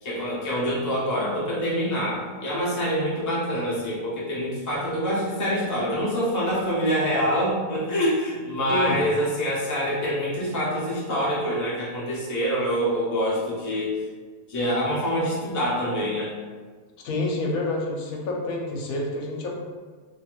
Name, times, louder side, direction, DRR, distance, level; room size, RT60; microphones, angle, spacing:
voice 1, 0.0-14.0 14.5-16.3, equal, 25° left, -7 dB, 0.4 m, -26 dB
voice 2, 17.0-19.5, left 2 dB, 80° left, -1 dB, 1.0 m, -28 dB
2.7 x 2.3 x 2.9 m, 1.5 s
omnidirectional pair, 1.5 m